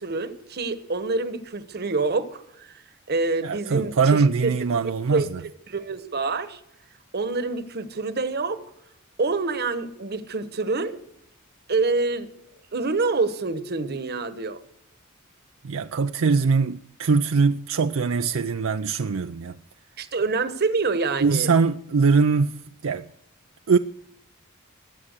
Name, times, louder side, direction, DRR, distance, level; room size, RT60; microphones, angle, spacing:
voice 1, 0.0-2.7 3.1-4.5 5.1-5.3 5.7-6.6 7.1-8.6 9.2-11.0 11.7-12.3 12.7-14.6 20.0-21.5, right 3 dB, 50° right, 1.2 m, -26 dB
voice 2, 3.4-5.4 15.6-19.6 21.2-23.1 23.7-23.8, right 5 dB, 70° right, 0.5 m, -22 dB
21.5 x 8.7 x 6.6 m
head